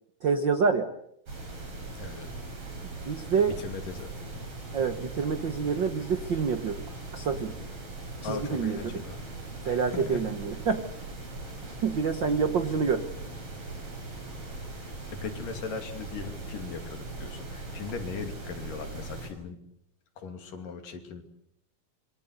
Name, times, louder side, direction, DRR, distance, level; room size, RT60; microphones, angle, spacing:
voice 1, 0.2-0.9 3.1-3.6 4.7-6.8 7.1-7.5 8.2-9.0 9.6-10.8 11.8-13.0, right 5 dB, 60° right, 9 dB, 1.1 m, -27 dB
sound 1, 1.3-19.3, right 2 dB, 40° right, 7.2 m, -40 dB
voice 2, 3.6-4.1 8.2-9.3 9.6-10.2 14.8-19.6 20.2-21.2, left 5 dB, 70° left, 6 dB, 4.2 m, -39 dB
26.5 x 23.5 x 8.2 m, 0.75 s
omnidirectional pair, 4.0 m